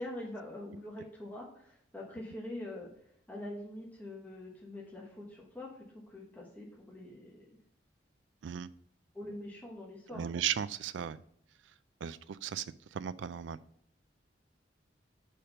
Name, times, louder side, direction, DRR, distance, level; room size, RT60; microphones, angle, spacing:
voice 1, 0.0-2.9 3.3-7.5 9.1-10.3, left 1 dB, 10° left, -3 dB, 1.1 m, -44 dB
voice 2, 10.1-11.2 12.0-12.7 12.9-13.6, right 9 dB, 75° right, 16 dB, 0.3 m, -36 dB
5.0 x 4.4 x 5.2 m, 0.66 s
head